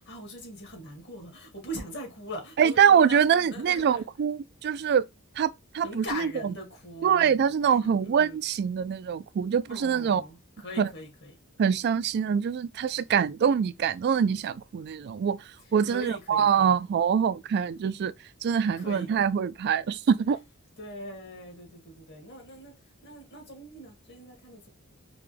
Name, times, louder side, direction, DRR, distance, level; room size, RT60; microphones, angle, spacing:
voice 1, 0.0-4.0 5.8-7.8 8.0-8.4 9.7-11.4 15.9-16.8 18.8-19.1 20.8-22.7 23.0-24.7, equal, 55° left, 1.9 m, -41 dB
voice 2, 2.6-5.1 5.4-6.5 7.0-10.2 10.8-10.9 11.6-15.4 15.7-18.1 18.4-20.4, right 7 dB, 50° right, 0.3 m, -24 dB
5.0 x 2.3 x 3.3 m
head